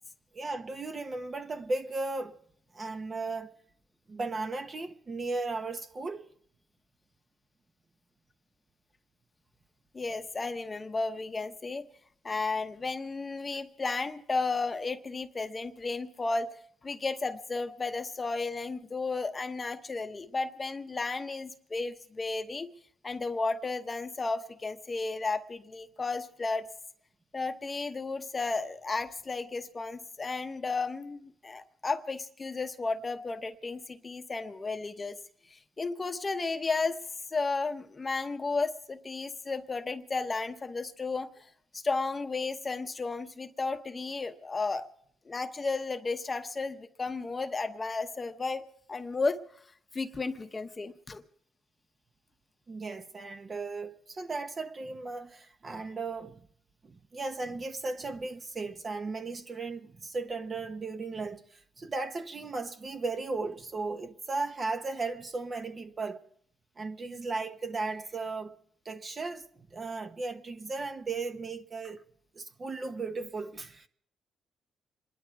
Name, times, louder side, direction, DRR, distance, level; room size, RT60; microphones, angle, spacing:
voice 1, 0.3-2.4 2.7-3.5 4.1-6.3 52.7-56.4 56.8-66.2 66.8-68.6 68.8-72.0 72.3-73.9, right 3 dB, 35° right, 1.1 m, -36 dB
voice 2, 9.9-11.8 12.2-16.6 16.8-22.7 23.0-26.7 27.3-35.2 35.5-37.0 37.3-41.5 41.7-44.9 45.3-48.6 48.9-49.4 49.9-51.2, left 3 dB, 30° left, 0.9 m, -33 dB
27.0 x 11.0 x 4.7 m
cardioid pair, 90°, 0 cm